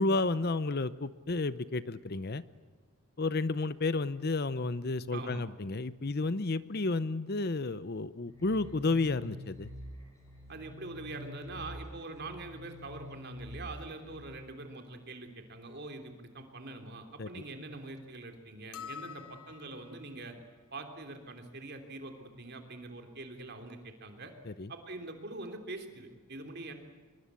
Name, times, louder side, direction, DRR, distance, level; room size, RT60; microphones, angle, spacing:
voice 1, 0.0-2.4 3.2-9.7 17.2-17.3 24.5-24.7, left 3 dB, 45° left, 16 dB, 0.7 m, -31 dB
voice 2, 5.1-5.4 10.5-20.4 20.7-24.3 24.7-26.7, right 2 dB, 50° right, 6 dB, 3.3 m, -44 dB
sound 1, 8.3-14.3, left 1 dB, 15° left, 6.1 m, -47 dB
sound 2, 18.7-20.1, left 8 dB, 75° left, 1.0 m, -46 dB
25.0 x 22.0 x 8.4 m, 1.3 s
head